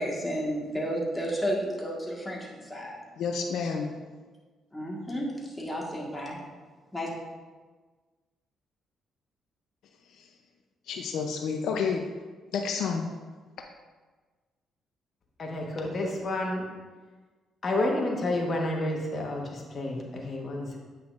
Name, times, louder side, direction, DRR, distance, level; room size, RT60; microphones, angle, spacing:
voice 1, 0.0-3.0 4.7-5.3 5.6-6.4 6.9-7.1, equal, 10° left, -3 dB, 1.6 m, -32 dB
voice 2, 3.2-4.0 10.2-10.3 10.9-12.0 12.5-13.1, left 5 dB, 80° left, 3 dB, 0.5 m, -30 dB
voice 3, 15.4-16.6 17.6-20.8, left 1 dB, 45° left, 0 dB, 1.3 m, -30 dB
8.7 x 5.7 x 2.5 m, 1.4 s
cardioid pair, 90°, 0 cm